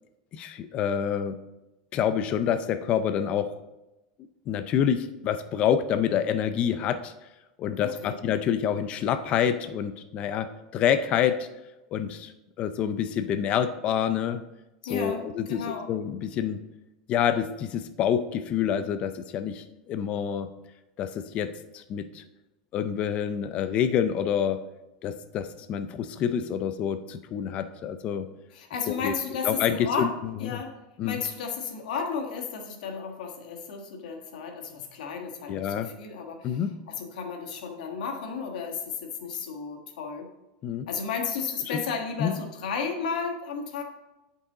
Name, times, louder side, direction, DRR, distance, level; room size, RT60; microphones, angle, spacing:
voice 1, 0.3-1.3 1.9-3.5 4.5-7.1 7.6-11.5 11.9-12.3 12.6-14.4 14.9-16.6 17.1-20.5 21.0-22.2 22.7-24.6 25.0-28.3 28.9-29.1 29.4-30.6 31.0-31.2 35.5-35.9 36.4-36.8 40.6-40.9 41.7-41.8 42.2-42.3, left 9 dB, 25° left, 10 dB, 0.4 m, -27 dB
voice 2, 7.8-8.2 14.9-15.2 15.5-15.9 28.5-30.1 30.4-30.7 31.0-36.6 37.0-40.3 40.9-43.8, left 5 dB, 80° left, 3 dB, 1.3 m, -33 dB
8.4 x 5.4 x 3.8 m, 0.98 s
supercardioid pair, 170°, 4 cm